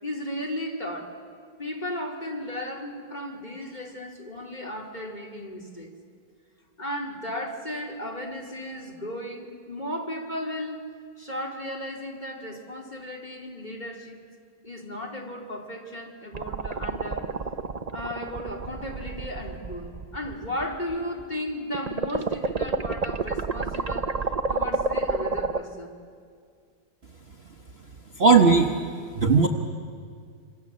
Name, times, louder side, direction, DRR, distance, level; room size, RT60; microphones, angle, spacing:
voice 1, 0.0-1.2 1.6-5.9 6.8-10.9 11.2-14.2 14.6-17.4 17.9-24.1 24.5-26.0, left 1 dB, 25° left, 0 dB, 2.8 m, -35 dB
sound 1, 16.3-21.3 21.7-25.6, right 3 dB, 65° right, 0.4 m, -29 dB
voice 2, 28.2-28.7 29.1-29.5, right 4 dB, 40° right, 3 dB, 1.2 m, -17 dB
26.5 x 26.5 x 7.4 m, 2.2 s
omnidirectional pair, 1.9 m